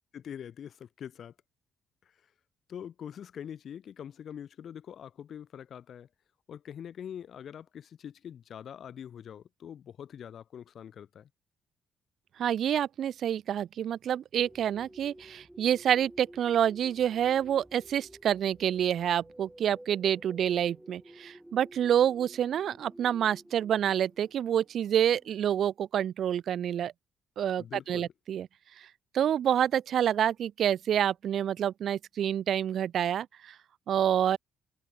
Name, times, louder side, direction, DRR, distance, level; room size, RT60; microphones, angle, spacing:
voice 1, 0.1-1.3 2.7-6.1 6.5-11.3 27.6-28.1, left 9 dB, 60° left, 0.9 m, -44 dB
voice 2, 12.4-26.9 27.4-28.5 29.1-33.5 33.9-34.4, right 9 dB, 65° right, 0.3 m, -28 dB
sound 1, 14.4-25.4, right 1 dB, 5° right, 1.0 m, -53 dB
cardioid pair, 90°, 0 cm